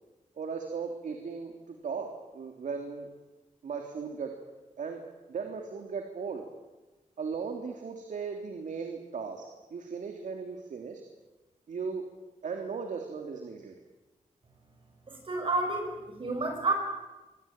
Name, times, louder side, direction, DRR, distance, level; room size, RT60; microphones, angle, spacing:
voice 1, 0.4-3.1 3.6-4.3 4.8-5.0 5.3-6.4 7.2-11.0 11.7-12.0 12.4-13.7, right 5 dB, 75° right, 3 dB, 3.4 m, -37 dB
voice 2, 15.1-16.7, right 3 dB, 40° right, 3 dB, 6.2 m, -30 dB
25.5 x 24.5 x 9.1 m, 1.1 s
wide cardioid pair, 135°, 13 cm